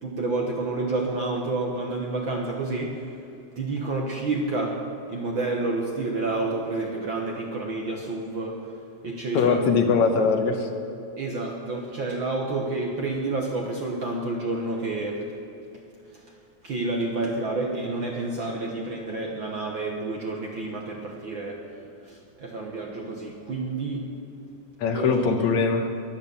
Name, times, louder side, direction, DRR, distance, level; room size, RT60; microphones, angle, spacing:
voice 1, 0.0-3.1 3.6-8.7 9.0-9.6 11.2-15.3 16.6-24.1 24.8-25.4, right 2 dB, 55° right, 0 dB, 1.4 m, -29 dB
voice 2, 9.3-10.7 24.8-25.9, left 5 dB, 70° left, 5 dB, 2.2 m, -21 dB
22.5 x 8.8 x 7.0 m, 2.8 s
omnidirectional pair, 3.5 m